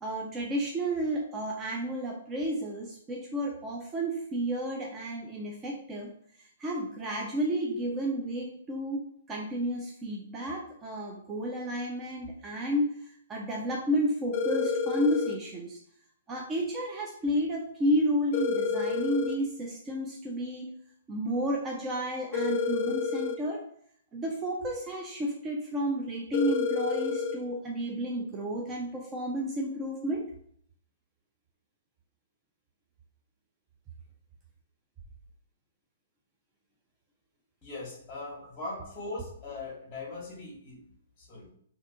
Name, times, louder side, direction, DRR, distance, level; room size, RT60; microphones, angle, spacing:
voice 1, 0.0-6.1 6.6-9.0 9.3-13.0 13.3-15.8 16.3-20.7 21.1-23.6 24.1-30.2, equal, 15° right, -1 dB, 0.4 m, -31 dB
sound 1, 14.3-15.4 18.3-19.4 22.3-23.4 26.3-27.4, left 5 dB, 45° left, 0.5 m, -29 dB
voice 2, 37.6-40.8 41.2-41.5, left 2 dB, 20° left, -6 dB, 1.0 m, -40 dB
2.6 x 2.3 x 3.6 m, 0.64 s
hypercardioid pair, 150°, 0 cm